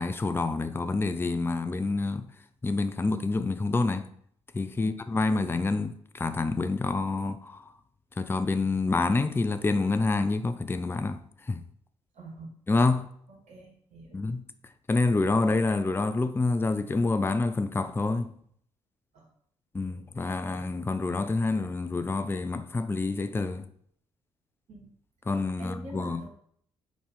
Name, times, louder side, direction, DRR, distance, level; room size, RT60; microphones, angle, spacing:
voice 1, 0.0-2.3 2.6-4.0 4.5-7.6 8.2-11.2 11.5-11.6 12.7-13.1 14.1-14.4 14.9-18.3 19.7-23.6 25.3-26.3, left 3 dB, 15° left, 0.5 m, -27 dB
voice 2, 12.1-12.6 13.3-14.2 19.1-19.3 24.7-24.9 25.6-26.3, right 1 dB, 50° right, 1.4 m, -45 dB
5.1 x 4.4 x 5.2 m
figure-of-eight pair, 40°, 15 cm